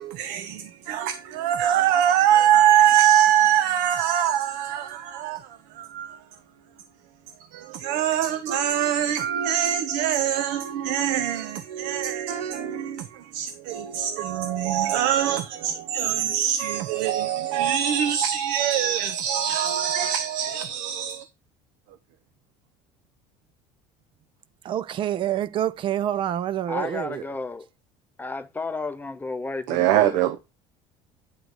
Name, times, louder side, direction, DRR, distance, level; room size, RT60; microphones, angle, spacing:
voice 1, 0.0-6.2 7.5-21.2 29.7-30.4, right 10 dB, 75° right, 0.7 m, -23 dB
voice 2, 24.6-27.3, right 11 dB, 40° right, 0.5 m, -27 dB
voice 3, 26.7-27.6 28.2-30.1, left 3 dB, 15° left, 0.5 m, -32 dB
9.2 x 3.9 x 4.7 m
cardioid pair, 135°, 13 cm